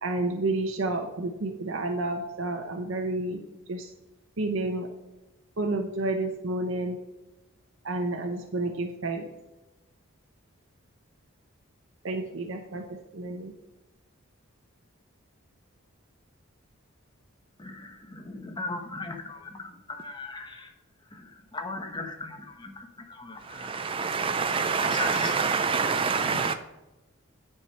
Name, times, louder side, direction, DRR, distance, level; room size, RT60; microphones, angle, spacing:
voice 1, 0.0-3.4 3.7-3.9 4.4-4.9 5.6-7.0 7.8-9.3 12.0-13.5, right 2 dB, 65° right, 3 dB, 0.8 m, -30 dB
voice 2, 17.6-20.7 21.1-23.8 24.8-26.5, left 3 dB, 20° left, 4 dB, 1.0 m, -39 dB
voice 3, 23.5-26.5, right 5 dB, 25° right, 8 dB, 0.4 m, -26 dB
9.4 x 4.7 x 5.5 m, 1.0 s
head